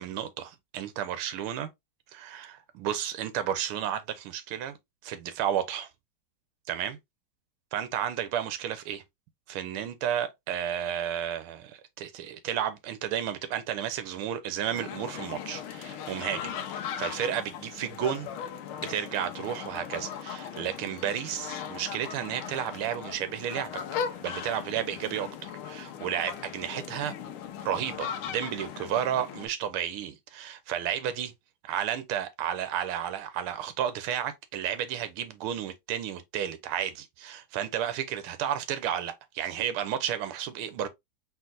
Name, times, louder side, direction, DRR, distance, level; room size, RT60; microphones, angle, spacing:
voice 1, 0.0-1.7 2.1-4.8 5.0-5.9 6.7-7.0 7.7-9.0 9.5-18.3 18.8-23.7 24.2-27.1 27.6-31.3 31.7-40.9, right 10 dB, 85° right, 1.6 m, -32 dB
sound 1, 14.7-29.5, left 8 dB, 85° left, 1.6 m, -38 dB
4.5 x 4.0 x 2.5 m
omnidirectional pair, 2.3 m